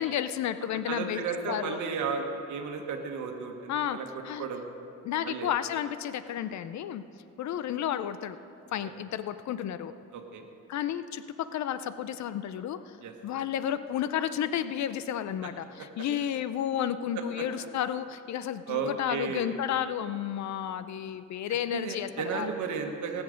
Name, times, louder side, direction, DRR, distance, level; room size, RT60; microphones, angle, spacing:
voice 1, 0.0-1.8 3.7-4.0 4.2-4.5 5.0-7.0 7.4-8.4 8.7-9.9 10.7-11.2 11.5-13.0 13.2-22.5, left 10 dB, 65° left, 13 dB, 0.6 m, -32 dB
voice 2, 0.9-4.0 4.4-4.6 5.2-5.5 8.8-9.0 10.1-10.4 13.0-13.1 18.7-19.5 21.7-23.2, right 5 dB, 75° right, 3 dB, 1.4 m, -33 dB
19.0 x 7.2 x 5.1 m, 2.6 s
cardioid pair, 90°, 30 cm